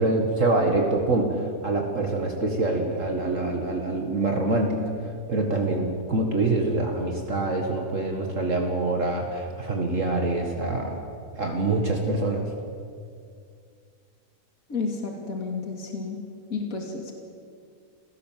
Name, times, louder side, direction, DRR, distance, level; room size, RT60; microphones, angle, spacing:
voice 1, 0.0-4.8 5.3-11.0 11.4-12.5, right 2 dB, 50° right, 2 dB, 2.3 m, -25 dB
voice 2, 14.7-16.2 16.5-17.1, left 4 dB, 55° left, 2 dB, 3.0 m, -31 dB
28.0 x 17.0 x 7.6 m, 2.3 s
omnidirectional pair, 1.7 m